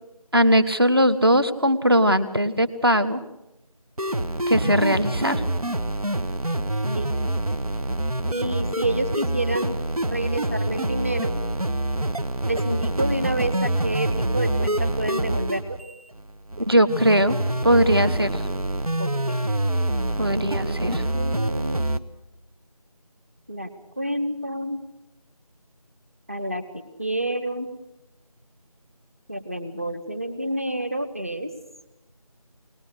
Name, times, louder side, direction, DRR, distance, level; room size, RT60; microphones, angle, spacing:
voice 1, 0.3-3.2 4.5-5.4 16.6-17.4 17.6-18.4 20.2-21.0, equal, 40° right, 9 dB, 1.4 m, -20 dB
sound 1, 4.0-22.0, right 1 dB, 70° right, 1.4 m, -26 dB
voice 2, 6.8-7.1 8.3-9.8 10.1-11.4 12.4-15.8 19.0-19.5 20.3-21.8 23.5-24.8 26.3-27.7 29.3-31.5, right 1 dB, 20° right, 8 dB, 1.1 m, -29 dB
23.0 x 19.0 x 6.4 m, 0.94 s
figure-of-eight pair, 175°, 20 cm